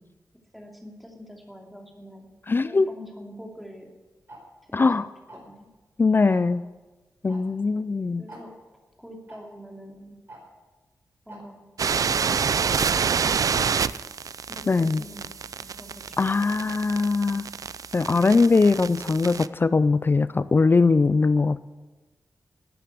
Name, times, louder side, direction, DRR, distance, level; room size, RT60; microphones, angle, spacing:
voice 1, 0.5-2.3 2.6-3.9 4.6-4.9 5.3-5.7 8.2-8.5 9.0-10.2 11.3-11.7 11.9-14.0 14.5-16.4, equal, ahead, 1 dB, 2.7 m, -45 dB
voice 2, 2.5-2.9 4.7-5.1 6.0-6.6 7.2-8.2 14.7-15.0 16.2-17.5 17.9-21.6, left 4 dB, 35° left, 16 dB, 0.4 m, -21 dB
Tick-tock, 4.3-4.4 5.3-5.6 6.3-6.5 7.3-7.4 7.7-7.8 8.3-8.4 9.3-9.4 10.3-10.4 11.3-11.4 12.3-12.4 13.3-13.4, right 1 dB, 40° right, 5.2 m, -44 dB
sound 1, 11.8-19.5, right 6 dB, 65° right, 0.4 m, -28 dB
13.0 x 9.3 x 9.5 m, 1.2 s
wide cardioid pair, 105°, 6 cm